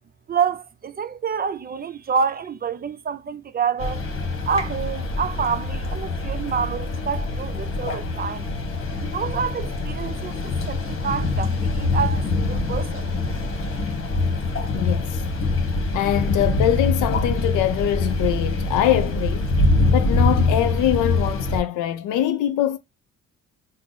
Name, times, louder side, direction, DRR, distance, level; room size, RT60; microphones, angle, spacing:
voice 1, 0.3-4.0 4.5-8.5 9.0-13.1, right 6 dB, 30° right, 0.5 m, -27 dB
sound 1, 3.8-21.6, left 2 dB, 45° left, 1.2 m, -24 dB
voice 2, 14.7-15.2 15.9-19.5 19.9-22.8, left 11 dB, 90° left, 0.5 m, -23 dB
3.6 x 2.0 x 3.9 m
cardioid pair, 90°, 30 cm